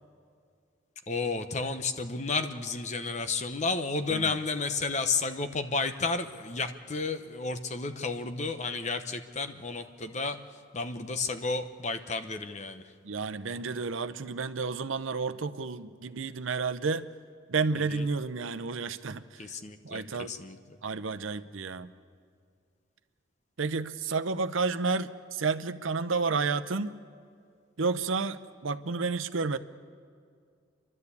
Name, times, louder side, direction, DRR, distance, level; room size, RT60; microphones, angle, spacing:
voice 1, 1.1-10.4 10.7-12.8 17.8-18.0 19.4-20.0 20.3-20.6, left 4 dB, 35° left, 8 dB, 0.9 m, -32 dB
voice 2, 13.0-17.0 17.5-19.5 19.8-20.3 20.8-21.9 23.6-26.9 27.8-29.6, right 4 dB, 85° right, 12 dB, 0.8 m, -31 dB
29.0 x 12.0 x 8.4 m, 2.2 s
head